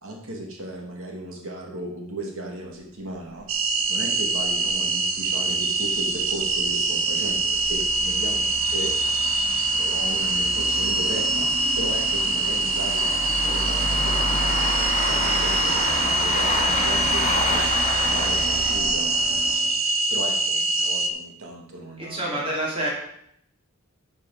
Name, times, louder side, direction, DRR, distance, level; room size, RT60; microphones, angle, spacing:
voice 1, 0.0-3.5 3.9-8.9 9.7-17.7 18.1-19.1 20.1-22.4, right 1 dB, 85° right, 1 dB, 2.2 m, -36 dB
sound 1, 3.3-3.4 3.7-3.8 4.2-4.3 4.6-4.7 5.4-19.7, left 1 dB, 30° left, 3.1 m, -30 dB
sound 2, 3.5-21.1, right 2 dB, 70° right, 1.0 m, -24 dB
voice 2, 22.0-22.9, right 1 dB, 25° right, -4 dB, 2.9 m, -27 dB
11.0 x 6.7 x 4.9 m, 0.72 s
head